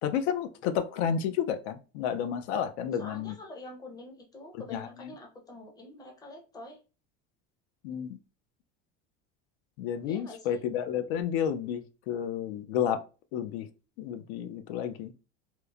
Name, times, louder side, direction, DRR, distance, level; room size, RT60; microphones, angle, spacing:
voice 1, 0.0-3.3 4.7-4.9 7.8-8.2 9.8-13.0 13.3-13.7 14.0-15.1, left 8 dB, 85° left, 0.5 m, -31 dB
voice 2, 3.0-6.8 10.0-10.6, left 2 dB, 10° left, 0.5 m, -46 dB
2.9 x 2.0 x 2.3 m
supercardioid pair, 140°, 31 cm